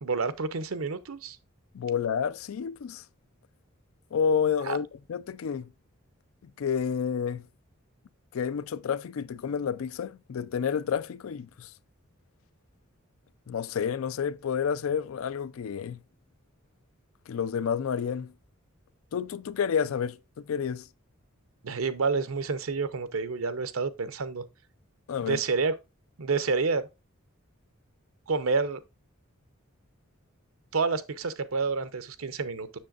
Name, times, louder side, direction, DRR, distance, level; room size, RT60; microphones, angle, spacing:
voice 1, 0.0-1.4 4.7-4.8 21.6-24.4 25.2-25.7 26.2-26.8 28.3-28.8 30.7-32.8, right 4 dB, 90° right, 0.8 m, -29 dB
voice 2, 1.7-3.0 4.1-5.7 6.4-7.4 8.3-11.7 13.5-16.0 17.3-18.3 19.1-20.9 25.1-25.4, left 7 dB, 75° left, 0.4 m, -30 dB
7.4 x 6.4 x 2.4 m
head